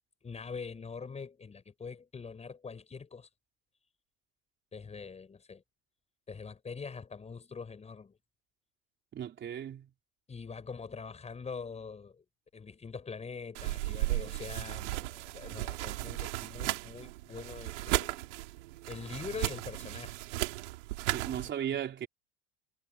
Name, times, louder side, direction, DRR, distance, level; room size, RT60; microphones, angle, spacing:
voice 1, 0.2-3.3 4.7-5.6 6.3-8.2 10.3-12.2 12.5-18.2 18.9-20.2 21.4-21.5, left 5 dB, 20° left, 6.8 m, -43 dB
voice 2, 9.1-9.9 21.1-22.1, right 10 dB, 35° right, 3.7 m, -36 dB
sound 1, 13.5-21.5, right 19 dB, 90° right, 3.5 m, -35 dB
supercardioid pair, 130°, 34 cm